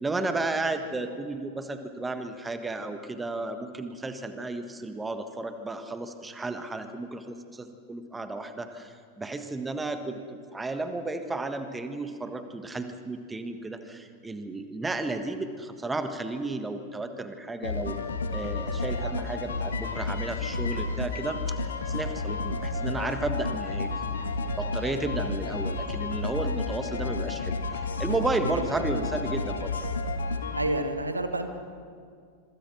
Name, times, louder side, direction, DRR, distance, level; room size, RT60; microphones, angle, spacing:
voice 1, 0.0-10.2 10.5-18.0 18.3-21.6 21.8-23.9 24.2-29.7, right 2 dB, 10° right, 8 dB, 1.5 m, -33 dB
sound 1, 17.6-30.6, left 3 dB, 70° left, 1.6 m, -31 dB
voice 2, 23.3-23.6 28.4-28.6 28.9-29.0 30.5-31.5, right 1 dB, 85° right, 8 dB, 1.6 m, -30 dB
26.0 x 24.0 x 6.1 m, 2.1 s
figure-of-eight pair, 90°, 0 cm